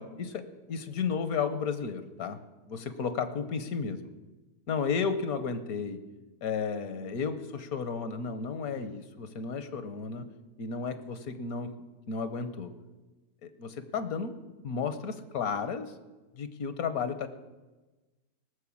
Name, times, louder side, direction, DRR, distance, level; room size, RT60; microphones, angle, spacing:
voice 1, 0.0-2.4 2.7-4.0 4.7-6.0 6.4-10.3 10.6-11.7 12.1-12.7 13.4-15.9 16.4-17.3, left 5 dB, 70° left, 11 dB, 1.4 m, -33 dB
18.0 x 6.6 x 8.5 m, 1.2 s
omnidirectional pair, 1.6 m